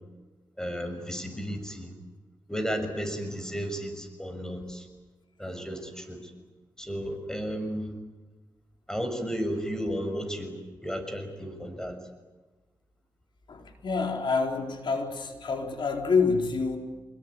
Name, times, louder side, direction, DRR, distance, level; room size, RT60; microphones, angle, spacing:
voice 1, 0.6-1.9 2.5-4.9 5.4-6.2 6.8-7.9 8.9-10.5 10.8-12.0, equal, 5° left, 7 dB, 6.5 m, -33 dB
voice 2, 13.5-16.8, left 4 dB, 70° left, 3 dB, 4.3 m, -27 dB
25.0 x 21.5 x 9.9 m, 1.2 s
cardioid pair, 65°, 8 cm